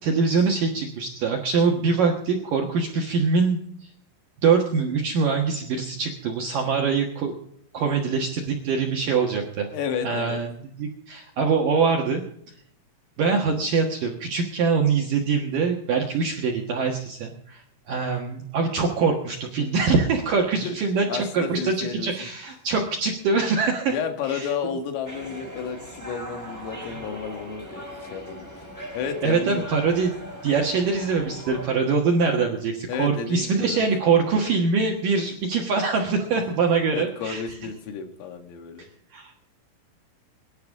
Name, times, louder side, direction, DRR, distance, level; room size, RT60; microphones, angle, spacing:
voice 1, 0.0-3.6 4.4-7.3 7.7-9.7 10.0-12.2 13.2-23.9 24.3-24.5 26.8-27.0 29.2-30.1 30.4-37.4 39.1-39.5, right 5 dB, 65° right, 1 dB, 2.2 m, -23 dB
voice 2, 9.7-10.4 20.6-20.8 21.1-22.1 23.9-28.7 28.9-29.7 32.9-33.8 36.9-38.9, left 6 dB, 80° left, 6 dB, 4.5 m, -32 dB
sound 1, 25.0-31.7, equal, 5° right, 4.0 m, -39 dB
24.0 x 11.5 x 3.7 m, 0.68 s
omnidirectional pair, 5.9 m